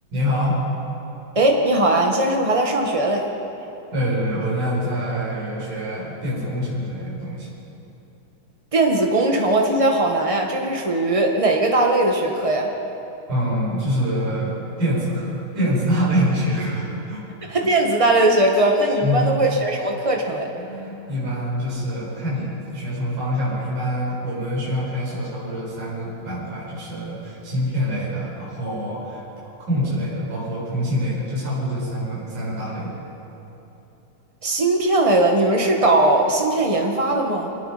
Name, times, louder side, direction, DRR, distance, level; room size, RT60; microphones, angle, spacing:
voice 1, 0.1-0.6 3.9-7.5 13.3-17.2 19.0-19.3 20.5-29.2 29.7-32.9, equal, 70° right, -7 dB, 8.3 m, -25 dB
voice 2, 1.3-3.2 8.7-12.7 17.5-20.5 34.4-37.5, right 2 dB, 35° right, 1 dB, 0.5 m, -19 dB
25.5 x 20.5 x 5.2 m, 2.9 s
omnidirectional pair, 3.8 m